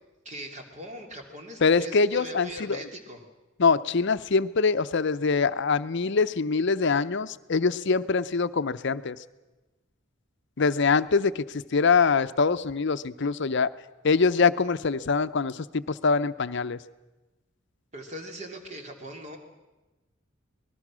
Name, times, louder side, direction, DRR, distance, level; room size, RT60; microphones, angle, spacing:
voice 1, 0.2-3.2 17.9-19.4, right 1 dB, 35° right, 3 dB, 2.8 m, -40 dB
voice 2, 1.6-2.8 3.6-9.2 10.6-13.7 14.0-16.8, left 4 dB, 60° left, 13 dB, 0.7 m, -24 dB
25.0 x 20.0 x 6.2 m, 1.1 s
head